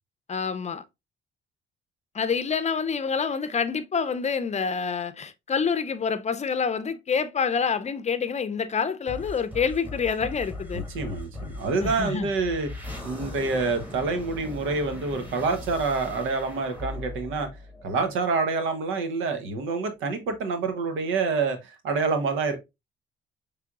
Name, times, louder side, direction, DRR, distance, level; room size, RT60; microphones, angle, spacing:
voice 1, 0.3-0.8 2.1-10.8 11.8-12.3, left 6 dB, 35° left, 0.6 m, -27 dB
sound 1, 9.1-18.4, left 2 dB, 10° right, 1.6 m, -39 dB
voice 2, 10.7-17.5 17.8-22.6, right 4 dB, 90° right, 1.0 m, -27 dB
5.7 x 3.4 x 2.4 m
cardioid pair, 90°, 20 cm